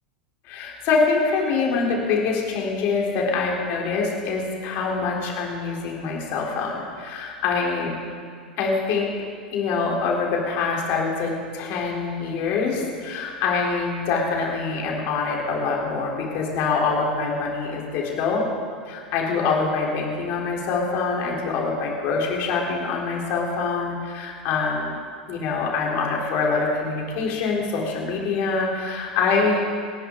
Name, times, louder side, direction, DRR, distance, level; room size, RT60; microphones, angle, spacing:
voice 1, 0.5-7.9 8.6-9.1 9.5-18.4 18.9-24.9 25.3-29.6, left 4 dB, 45° left, -2 dB, 3.6 m, -25 dB
28.0 x 10.5 x 3.8 m, 2.1 s
figure-of-eight pair, 80°, 5 cm